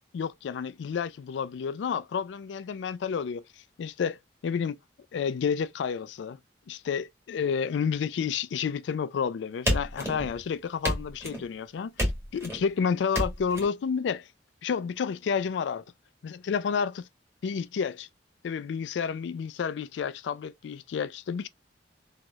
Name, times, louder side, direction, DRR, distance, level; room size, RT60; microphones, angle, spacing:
voice 1, 0.1-3.4 3.8-4.2 4.4-4.8 5.1-6.4 6.7-14.3 14.6-15.8 16.2-17.1 17.4-18.1 18.4-21.5, left 6 dB, 80° left, 0.3 m, -30 dB
sound 1, 9.7-10.4 10.8-11.5 12.0-12.6 13.1-13.6, equal, 15° right, 1.6 m, -30 dB
3.0 x 2.7 x 2.3 m
head